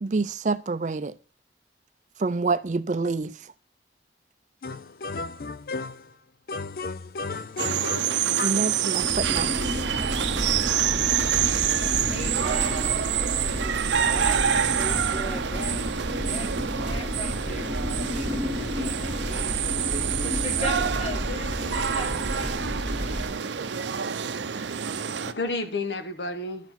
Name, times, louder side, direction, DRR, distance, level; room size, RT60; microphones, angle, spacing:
voice 1, 0.0-1.1 2.2-3.3 8.4-9.7, right 3 dB, 45° right, 0.4 m, -27 dB
sound 1, 4.6-6.1 6.5-8.7, left 3 dB, 55° left, 0.4 m, -34 dB
sound 2, 7.6-25.3, right 8 dB, 90° right, 0.6 m, -27 dB
sound 3, 9.0-23.3, left 1 dB, 10° left, 1.9 m, -31 dB
voice 2, 12.1-13.1 13.6-15.8 16.3-16.5 16.9-22.6, left 1 dB, 35° left, 1.5 m, -38 dB
voice 3, 24.1-26.7, left 2 dB, 75° left, 1.1 m, -33 dB
11.5 x 4.6 x 5.8 m
head